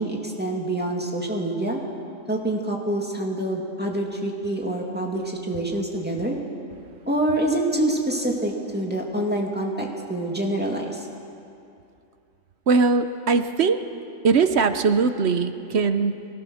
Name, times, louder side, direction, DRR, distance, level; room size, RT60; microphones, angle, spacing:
voice 1, 0.0-1.8 2.3-6.4 7.1-11.0, right 1 dB, 5° right, -1 dB, 2.4 m, -26 dB
voice 2, 12.7-13.8 14.2-16.3, right 4 dB, 60° right, 9 dB, 1.0 m, -21 dB
23.0 x 18.0 x 6.4 m, 2.5 s
omnidirectional pair, 1.4 m